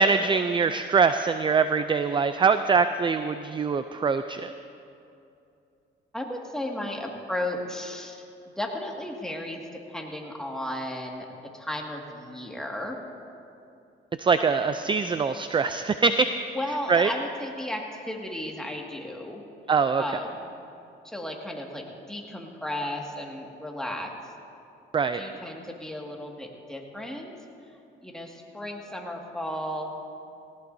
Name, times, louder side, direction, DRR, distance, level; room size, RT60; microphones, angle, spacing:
voice 1, 0.0-4.5 14.2-16.3 16.9-17.1 19.7-20.0 24.9-25.2, right 5 dB, 25° right, 10 dB, 0.4 m, -23 dB
voice 2, 6.1-8.2 8.6-9.6 9.9-11.3 11.5-13.0 16.5-19.4 20.0-20.4 21.0-24.1 25.1-27.3 28.0-29.9, left 1 dB, 5° left, 0 dB, 2.0 m, -34 dB
18.0 x 17.5 x 2.7 m, 2.7 s
cardioid pair, 90°, 20 cm